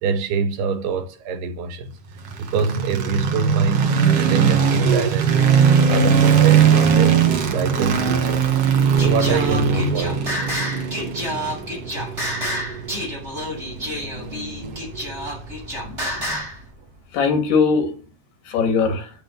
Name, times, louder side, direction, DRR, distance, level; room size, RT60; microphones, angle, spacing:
voice 1, 0.0-1.9 2.4-5.3 5.9-8.5 9.0-10.4, right 4 dB, 85° right, 3.5 m, -24 dB
sound 1, 2.2-16.3, right 7 dB, 50° right, 2.3 m, -20 dB
Singing, 9.0-16.6, equal, 15° right, 7.9 m, -29 dB
voice 2, 15.8-16.4 17.1-17.9 18.5-19.1, left 5 dB, 80° left, 4.5 m, -21 dB
10.0 x 10.0 x 7.3 m
omnidirectional pair, 4.5 m